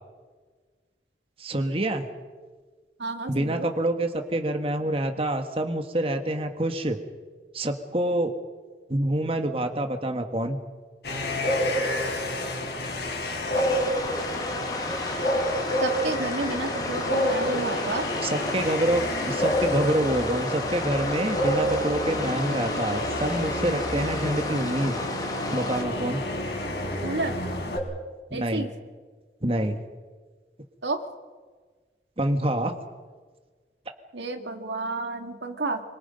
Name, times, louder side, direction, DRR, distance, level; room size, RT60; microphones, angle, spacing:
voice 1, 1.4-2.1 3.3-7.0 7.5-8.3 8.9-10.6 18.2-25.0 25.5-26.2 28.3-28.7 29.4-29.8 32.2-32.7, right 1 dB, 30° right, 6 dB, 1.7 m, -26 dB
voice 2, 3.0-3.7 15.8-18.1 27.0-27.4 28.3-28.7 30.8-31.0 34.1-35.8, right 3 dB, 85° right, 5 dB, 2.3 m, -31 dB
sound 1, 11.0-27.8, left 1 dB, 70° left, 5.1 m, -28 dB
sound 2, 13.5-25.8, left 2 dB, 20° left, 2.2 m, -35 dB
26.5 x 25.0 x 5.3 m, 1.4 s
head